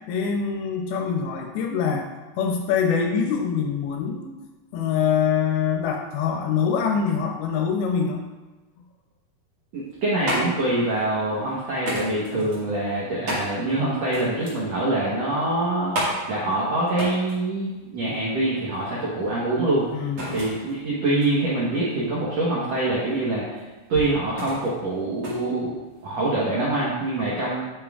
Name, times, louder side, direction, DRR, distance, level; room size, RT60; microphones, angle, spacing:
voice 1, 0.1-2.1 2.4-4.3 4.7-8.2 19.9-20.4, left 6 dB, 80° left, 2 dB, 2.4 m, -24 dB
sound 1, 9.7-26.3, equal, 45° right, 1.6 m, -34 dB
voice 2, 9.7-19.9 20.3-23.4 23.9-25.7 26.0-27.6, right 2 dB, 80° right, -6 dB, 1.5 m, -25 dB
8.4 x 7.2 x 2.4 m, 1.2 s
omnidirectional pair, 4.8 m